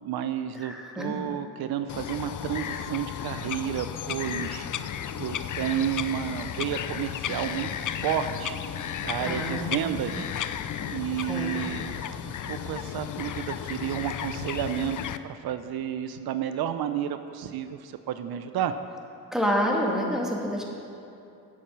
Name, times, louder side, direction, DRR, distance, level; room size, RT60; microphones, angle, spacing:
voice 1, 0.0-8.6 9.0-10.3 10.9-12.0 12.5-15.0 15.2-18.8, right 10 dB, 85° right, 10 dB, 0.6 m, -31 dB
voice 2, 0.5-1.2 9.2-10.0 11.3-11.5 19.3-20.6, equal, ahead, -2 dB, 2.4 m, -28 dB
Bird vocalization bird call bird song, 1.9-15.2, left 9 dB, 55° left, 0.5 m, -34 dB
8.7 x 8.6 x 7.4 m, 2.7 s
cardioid pair, 65°, 36 cm